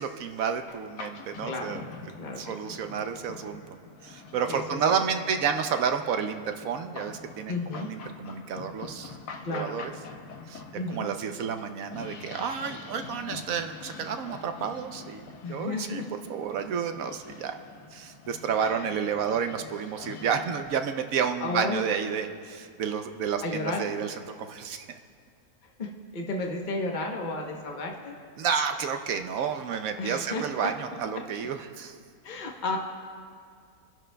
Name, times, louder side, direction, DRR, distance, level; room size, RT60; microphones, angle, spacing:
voice 1, 0.0-1.8 2.4-3.6 4.0-9.2 9.5-9.8 10.5-10.6 10.9-16.0 16.3-17.5 17.9-24.9 28.4-31.9, right 7 dB, 70° right, 7 dB, 1.0 m, -30 dB
sound 1, 0.7-20.6, left 4 dB, 85° left, 1.4 m, -45 dB
voice 2, 1.4-1.8 2.2-2.7 4.5-5.0 7.5-7.9 9.4-9.8 10.7-11.1 15.4-16.1 18.6-19.1 21.4-21.8 23.4-23.9 25.8-28.1 30.0-30.7 32.2-32.8, left 2 dB, 35° left, 0 dB, 0.9 m, -33 dB
29.0 x 10.5 x 2.2 m, 2.1 s
omnidirectional pair, 1.6 m